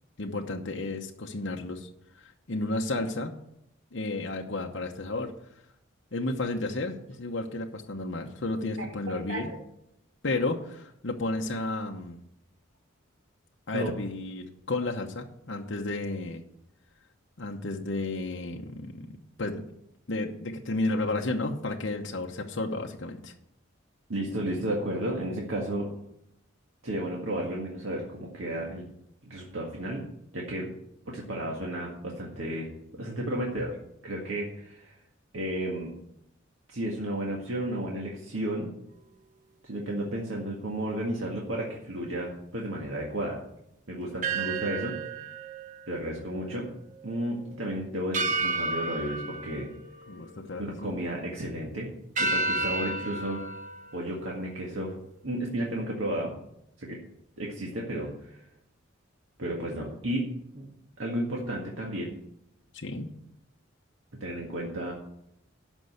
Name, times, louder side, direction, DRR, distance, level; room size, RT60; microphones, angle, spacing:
voice 1, 0.2-1.9 2.1-3.3 3.9-5.3 6.1-9.5 10.2-12.2 13.7-16.4 17.4-19.1 19.4-19.6 20.1-23.3 50.1-50.9 62.7-63.1, left 2 dB, 60° left, 1 dB, 0.9 m, -32 dB
voice 2, 8.8-9.6 13.7-13.9 24.1-25.9 26.8-28.9 29.2-30.0 30.3-30.7 31.1-33.8 34.0-35.0 35.3-35.9 36.7-38.7 39.6-43.4 43.9-45.2 45.9-46.7 47.0-49.7 50.6-51.9 52.2-53.4 53.9-54.9 55.2-56.3 56.8-57.0 57.4-58.4 59.4-60.3 60.5-60.7 61.0-62.1 64.2-64.9, right 1 dB, 75° right, -2 dB, 1.8 m, -33 dB
sound 1, 44.2-46.7 47.0-47.2 48.1-50.7 51.1-51.6 52.2-55.0, right 2 dB, 40° right, 0.9 m, -32 dB
12.0 x 5.4 x 8.1 m, 0.78 s
head